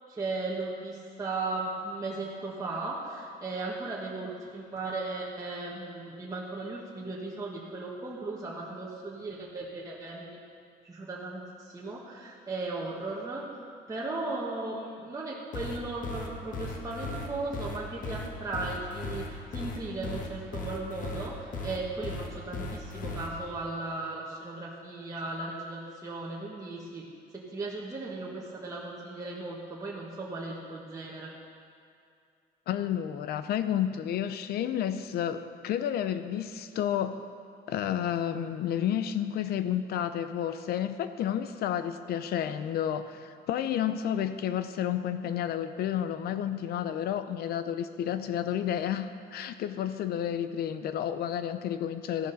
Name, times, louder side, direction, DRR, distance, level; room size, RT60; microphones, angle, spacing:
voice 1, 0.1-10.4 10.8-13.5 13.9-27.0 27.3-31.3, right 3 dB, 20° right, -4 dB, 1.6 m, -36 dB
sound 1, 15.5-23.3, left 3 dB, 50° left, 1.6 m, -36 dB
voice 2, 32.7-37.2 37.7-52.3, left 10 dB, 70° left, 11 dB, 0.7 m, -31 dB
14.5 x 11.5 x 4.1 m, 2.3 s
cardioid pair, 110°, 17 cm